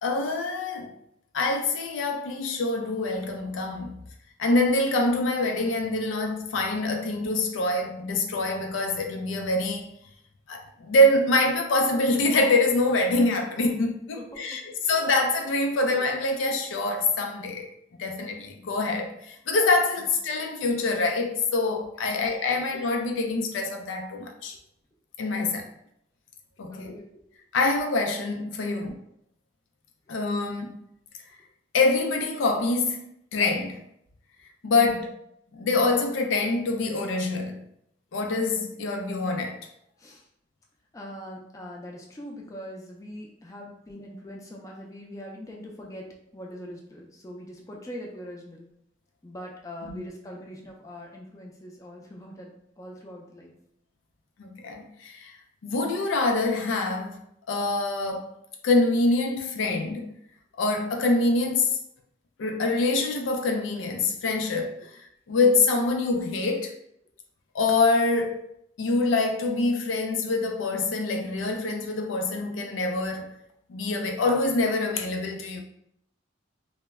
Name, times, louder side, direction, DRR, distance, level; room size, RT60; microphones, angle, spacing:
voice 1, 0.0-0.9 1.3-4.0 4.4-9.9 10.5-17.7 18.0-24.5 25.2-25.6 26.6-26.9 27.5-28.9 30.1-30.7 31.7-33.8 34.6-35.1 35.5-37.6 38.1-39.6 49.8-50.0 54.4-55.3 55.6-57.2 57.5-58.3 58.6-60.2 60.6-61.8 62.4-65.0 65.3-66.7 67.5-68.4 68.8-73.3 73.7-75.6, left 2 dB, 90° left, 0.4 m, -25 dB
voice 2, 14.1-14.9 20.0-20.1 22.0-22.3 25.4-25.5 26.7-27.2 28.7-28.9 34.8-35.1 40.0-40.2 40.9-46.1 46.3-48.7 49.2-52.5 52.8-53.5 64.8-64.9, equal, 15° left, 0.3 m, -42 dB
2.1 x 2.0 x 3.4 m
head